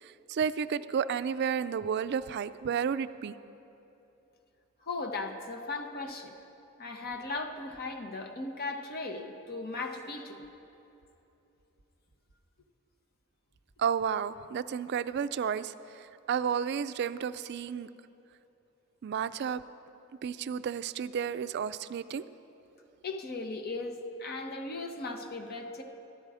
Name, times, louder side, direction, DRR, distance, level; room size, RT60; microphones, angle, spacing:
voice 1, 0.0-3.3 13.8-17.9 19.0-19.6 20.2-22.2, right 7 dB, 55° right, 14 dB, 0.3 m, -32 dB
voice 2, 4.9-6.3 6.8-10.4 23.0-25.8, left 3 dB, 45° left, 4 dB, 0.8 m, -37 dB
13.5 x 11.0 x 4.8 m, 2.9 s
head